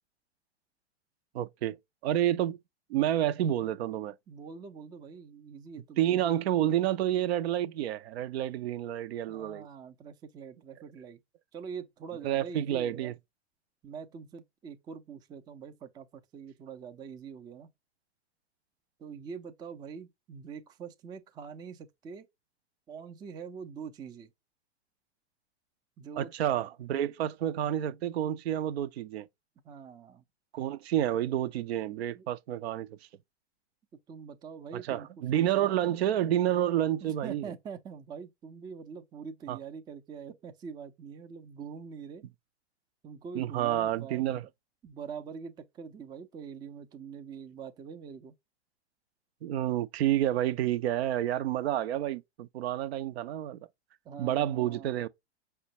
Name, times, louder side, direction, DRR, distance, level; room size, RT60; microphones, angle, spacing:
voice 1, 1.3-1.8 2.0-2.6 2.9-4.2 6.0-9.7 12.2-13.1 26.2-29.3 30.5-33.0 34.7-37.4 39.5-39.6 43.3-44.5 49.4-53.6 54.2-55.1, right 12 dB, 70° right, 0.5 m, -29 dB
voice 2, 4.3-6.3 9.3-11.2 11.5-13.1 13.8-17.7 19.0-22.3 22.9-24.3 26.0-26.3 29.6-30.2 32.1-32.3 34.1-35.8 37.0-42.2 43.0-44.5 44.8-48.4 54.0-54.9, right 6 dB, 15° right, 0.4 m, -44 dB
5.0 x 2.1 x 2.7 m
hypercardioid pair, 110°, 34 cm